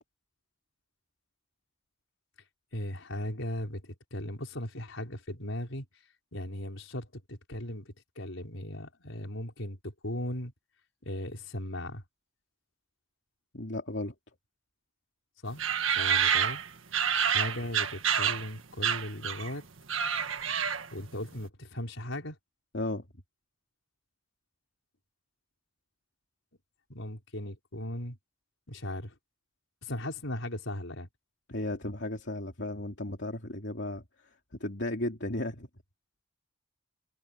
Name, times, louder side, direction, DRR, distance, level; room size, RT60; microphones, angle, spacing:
voice 1, 2.7-5.8 6.3-10.5 11.0-12.0 15.4-15.6 15.9-16.6 17.3-19.6 20.9-22.4 26.9-28.2 28.7-29.1 29.8-31.1, left 1 dB, 80° left, 4.9 m, -37 dB
voice 2, 13.5-14.1 22.7-23.0 31.5-34.0 34.6-35.7, left 1 dB, 60° left, 3.1 m, -34 dB
sound 1, 15.6-18.5 18.8-19.5 19.8-21.0, right 8 dB, 85° right, 1.7 m, -28 dB
head